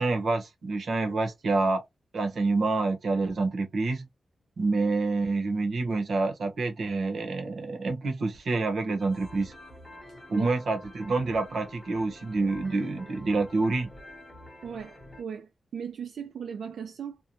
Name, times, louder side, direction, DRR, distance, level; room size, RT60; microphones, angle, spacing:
voice 1, 0.0-1.8 2.1-4.1 4.6-9.5 10.3-13.9, right 3 dB, 60° right, 0.8 m, -27 dB
sound 1, 9.0-15.2, left 1 dB, 10° left, 1.0 m, -48 dB
voice 2, 14.6-17.2, right 7 dB, 90° right, 0.3 m, -38 dB
2.6 x 2.1 x 2.9 m
wide cardioid pair, 145°, 0 cm